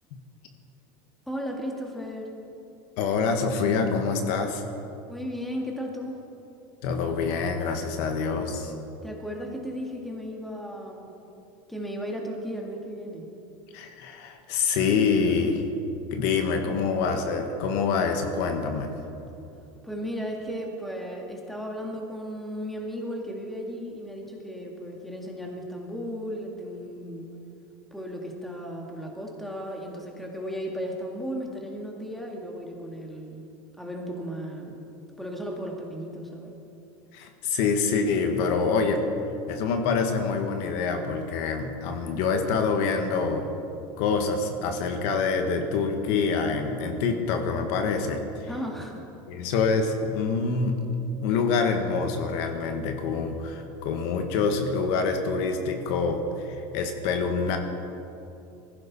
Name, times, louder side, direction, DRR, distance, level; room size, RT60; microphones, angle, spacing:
voice 1, 1.3-2.3 5.1-6.2 9.0-11.1 11.7-13.3 19.8-27.3 27.9-33.4 33.8-34.8 35.2-36.5 48.5-49.1, equal, ahead, 0 dB, 2.1 m, -35 dB
voice 2, 3.0-4.6 6.8-8.7 13.7-15.7 16.1-18.9 37.1-39.0 39.5-43.4 44.0-48.5 49.3-50.9 51.2-57.6, left 5 dB, 65° left, 5 dB, 1.6 m, -26 dB
19.5 x 15.5 x 4.2 m, 2.7 s
cardioid pair, 145°, 11 cm